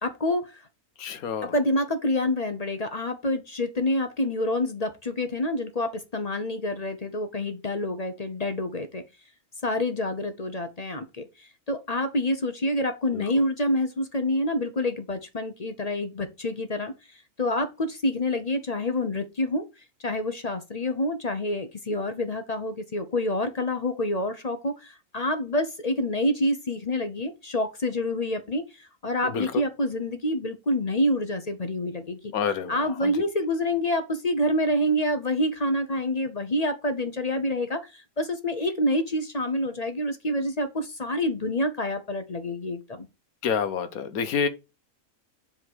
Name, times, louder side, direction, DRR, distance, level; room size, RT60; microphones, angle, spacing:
voice 1, 0.0-0.6 1.4-9.0 9.6-19.6 20.0-32.3 32.7-43.1, left 1 dB, 35° left, 0.8 m, -27 dB
voice 2, 1.0-1.5 13.1-13.3 29.2-29.5 32.3-33.1 43.4-44.5, left 6 dB, 85° left, 1.4 m, -28 dB
7.7 x 3.8 x 6.1 m
omnidirectional pair, 1.5 m